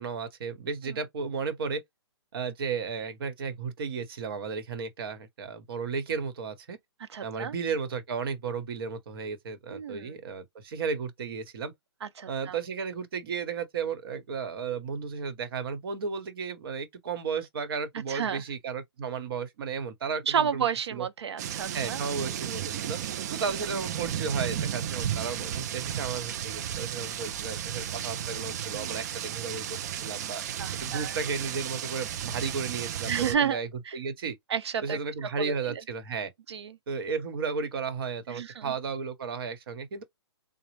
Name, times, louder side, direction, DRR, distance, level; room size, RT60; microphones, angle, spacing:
voice 1, 0.0-1.8 2.3-6.8 7.2-11.7 12.3-21.1 21.7-23.0 23.3-30.4 30.7-33.7 33.9-34.4 34.8-36.3 36.9-40.0, right 5 dB, 55° right, 1.2 m, -34 dB
voice 2, 7.0-7.5 9.7-10.1 12.0-12.6 18.1-18.4 20.3-22.0 24.9-25.0 28.7-28.9 30.6-31.2 33.1-33.6 33.8-34.0 34.5-35.8 36.5-36.8 38.3-38.7, right 7 dB, 70° right, 0.7 m, -31 dB
sound 1, 21.4-33.3, right 10 dB, 40° right, 0.4 m, -34 dB
4.0 x 2.2 x 3.1 m
hypercardioid pair, 150°, 14 cm